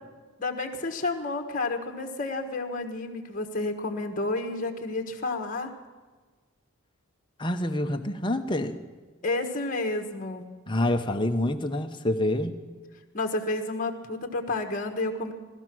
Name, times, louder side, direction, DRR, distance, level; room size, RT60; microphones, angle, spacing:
voice 1, 0.4-5.7 9.2-10.4 13.1-15.3, left 2 dB, 40° left, 4 dB, 1.4 m, -30 dB
voice 2, 7.4-8.8 10.7-12.6, left 1 dB, 25° left, 5 dB, 0.8 m, -27 dB
18.0 x 13.0 x 6.2 m, 1.4 s
head